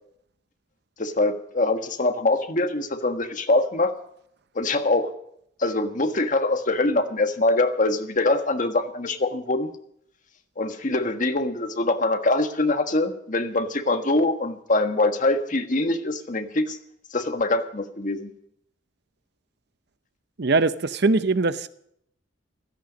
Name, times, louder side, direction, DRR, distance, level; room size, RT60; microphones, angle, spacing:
voice 1, 1.0-3.9 4.5-5.1 5.6-9.7 10.6-16.8 17.1-18.3, left 2 dB, 45° left, 1.5 m, -23 dB
voice 2, 20.4-21.7, right 3 dB, 60° right, 0.7 m, -21 dB
15.5 x 14.0 x 5.2 m
head